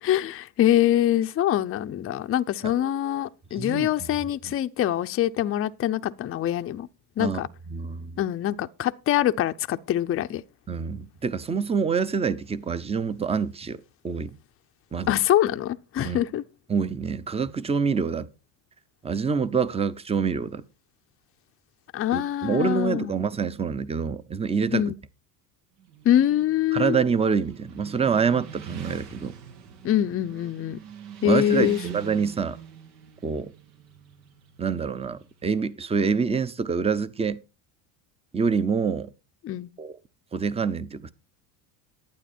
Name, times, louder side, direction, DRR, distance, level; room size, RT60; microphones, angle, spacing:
voice 1, 0.0-6.9 7.2-7.5 8.2-10.4 15.1-16.4 21.9-23.2 24.7-24.9 26.0-27.0 29.8-30.8 31.2-31.8 39.4-39.7, left 12 dB, 30° left, 0.6 m, -24 dB
voice 2, 3.6-3.9 7.2-7.4 7.7-8.2 10.7-14.3 14.9-15.1 16.0-16.2 16.7-18.3 19.0-20.6 22.1-24.8 26.7-29.3 31.2-32.6 33.2-33.5 34.6-37.4 38.3-39.1 39.8-39.9 40.3-41.1, right 5 dB, 15° right, 0.6 m, -26 dB
Motorcycle, 25.8-35.6, right 8 dB, 90° right, 2.8 m, -43 dB
11.5 x 9.2 x 4.3 m
supercardioid pair, 120°, 50 cm